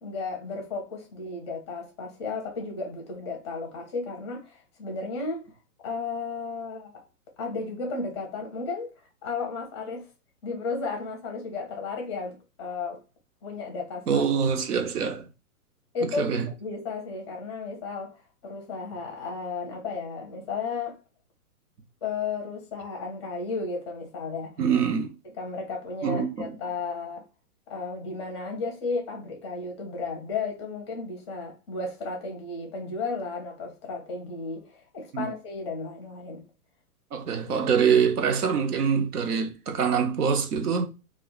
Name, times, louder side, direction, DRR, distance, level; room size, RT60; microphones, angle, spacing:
voice 1, 0.0-5.5 5.8-7.0 7.4-8.9 9.2-10.1 10.4-13.0 13.4-14.2 14.7-14.8 15.9-21.0 22.0-24.6 25.4-27.2 27.7-36.5, left 4 dB, 20° left, 0.5 m, -34 dB
voice 2, 14.1-15.2 16.0-16.5 24.6-25.1 26.0-26.5 35.1-35.3 37.1-40.9, right 6 dB, 85° right, 0.8 m, -24 dB
2.3 x 2.2 x 3.6 m
hypercardioid pair, 145°, 44 cm